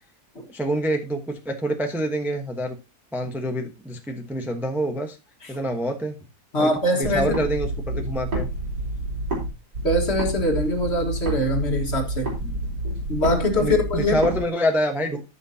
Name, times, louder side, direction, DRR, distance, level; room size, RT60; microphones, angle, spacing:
voice 1, 0.5-2.8 3.1-5.2 5.5-6.2 6.6-8.5 12.4-12.7 13.6-15.2, equal, ahead, 1.0 m, -26 dB
voice 2, 6.5-7.4 9.8-12.3 13.1-14.2, left 1 dB, 40° left, 2.0 m, -23 dB
sound 1, 7.0-9.5 9.7-14.4, right 1 dB, 80° right, 4.3 m, -28 dB
13.5 x 6.3 x 2.8 m
omnidirectional pair, 1.8 m